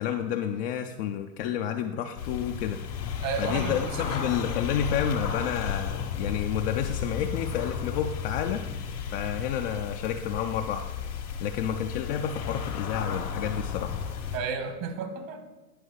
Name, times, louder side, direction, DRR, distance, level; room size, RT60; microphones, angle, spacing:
voice 1, 0.0-2.8 3.4-8.6 9.1-10.9 11.4-14.0, left 9 dB, 40° left, 4 dB, 0.5 m, -30 dB
sound 1, 2.2-14.4, left 7 dB, 70° left, 1.6 m, -33 dB
voice 2, 3.2-4.2 14.3-15.4, right 5 dB, 55° right, 7 dB, 1.6 m, -32 dB
10.0 x 5.5 x 4.7 m, 1.1 s
hypercardioid pair, 110°, 47 cm